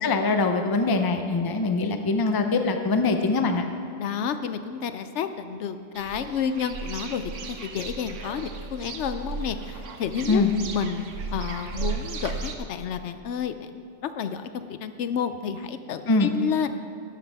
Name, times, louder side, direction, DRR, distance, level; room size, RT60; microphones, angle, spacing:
voice 1, 0.0-3.6 10.3-10.5 16.1-16.3, left 3 dB, 25° left, 6 dB, 0.5 m, -23 dB
voice 2, 4.0-10.4 10.7-11.1 11.3-16.9, left 7 dB, 75° left, 10 dB, 0.9 m, -30 dB
sound 1, 5.9-12.5, right 5 dB, 85° right, 1.2 m, -35 dB
13.0 x 11.0 x 3.5 m, 2.6 s
omnidirectional pair, 1.2 m